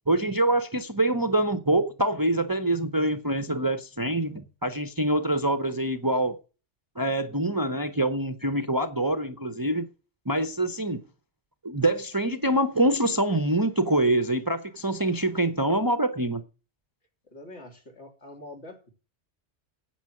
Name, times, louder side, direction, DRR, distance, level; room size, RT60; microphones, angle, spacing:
voice 1, 0.1-6.4 7.0-9.9 10.3-11.0 11.6-16.4, right 1 dB, 20° right, 0.7 m, -25 dB
voice 2, 17.3-18.9, left 2 dB, 70° left, 3.3 m, -45 dB
9.6 x 7.9 x 7.8 m
omnidirectional pair, 1.2 m